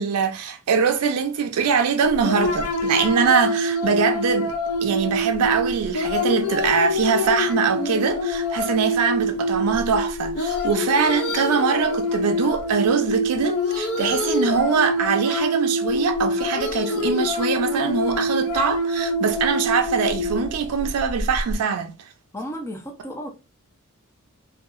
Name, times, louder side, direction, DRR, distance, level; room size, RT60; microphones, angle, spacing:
voice 1, 0.0-4.5 4.8-21.9, right 6 dB, 90° right, 0.4 m, -23 dB
sound 1, 2.0-21.6, left 1 dB, 80° left, 0.5 m, -25 dB
voice 2, 22.3-23.3, equal, 10° left, 0.5 m, -33 dB
2.7 x 2.3 x 2.4 m
head